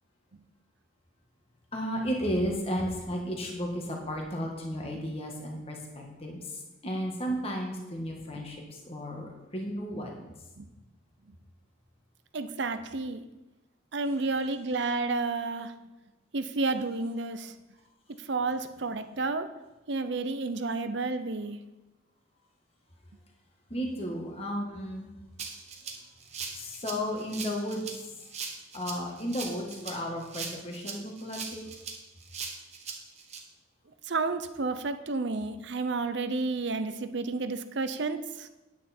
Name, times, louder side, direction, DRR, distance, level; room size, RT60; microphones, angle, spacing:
voice 1, 1.7-6.4 6.8-8.6 8.8-10.3 23.7-25.1 26.5-27.9 28.7-31.6, equal, 30° left, 0 dB, 1.7 m, -33 dB
voice 2, 12.3-13.2 13.9-15.7 16.3-17.5 18.3-19.5 19.9-21.6 34.0-38.5, right 3 dB, 60° right, 10 dB, 0.7 m, -31 dB
Rattle (instrument), 25.4-33.4, right 5 dB, 35° right, 1.2 m, -40 dB
9.4 x 9.2 x 4.4 m, 1.0 s
head